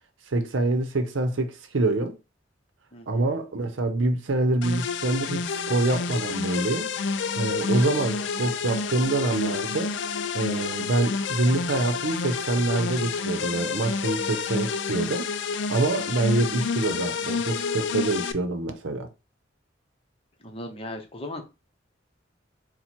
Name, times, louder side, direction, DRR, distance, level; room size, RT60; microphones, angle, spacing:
voice 1, 0.3-2.2 3.1-6.9 7.4-9.9 10.3-15.3 15.7-19.1, right 2 dB, 85° right, 0.7 m, -26 dB
voice 2, 2.9-3.3 20.4-21.4, left 1 dB, 30° left, 0.8 m, -37 dB
sound 1, 4.6-18.3, left 5 dB, 65° left, 0.4 m, -29 dB
4.4 x 2.2 x 4.2 m
head